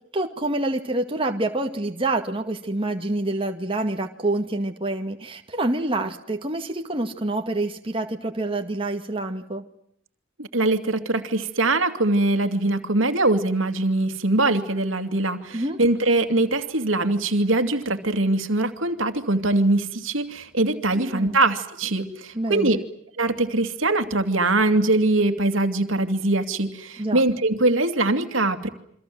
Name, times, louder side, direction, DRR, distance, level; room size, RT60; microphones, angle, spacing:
voice 1, 0.1-9.6 15.5-15.8 20.9-21.4 22.4-22.8 27.0-27.2, right 2 dB, 25° right, 4 dB, 2.1 m, -27 dB
voice 2, 10.4-22.8 23.2-28.7, right 2 dB, 75° right, 8 dB, 2.6 m, -22 dB
28.5 x 25.0 x 7.8 m, 0.69 s
head